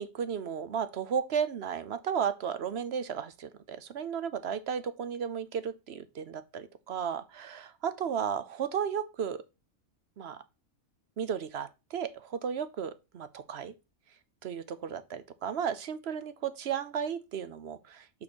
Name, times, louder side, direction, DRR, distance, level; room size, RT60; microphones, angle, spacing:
voice 1, 0.0-9.4 10.2-10.4 11.2-13.7 14.4-18.1, right 7 dB, 55° right, 0.9 m, -34 dB
5.9 x 4.1 x 6.2 m
omnidirectional pair, 1.5 m